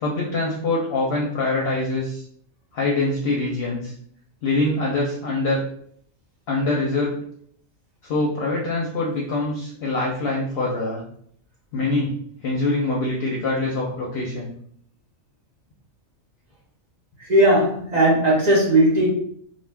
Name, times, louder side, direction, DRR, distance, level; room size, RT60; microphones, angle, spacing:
voice 1, 0.0-2.2 2.7-3.9 4.4-5.6 6.5-7.2 8.0-11.0 11.7-12.1 12.4-14.5, left 2 dB, 60° left, -2 dB, 0.7 m, -24 dB
voice 2, 17.3-19.1, right 1 dB, 40° right, -3 dB, 0.6 m, -17 dB
2.3 x 2.2 x 3.2 m, 0.63 s
omnidirectional pair, 1.4 m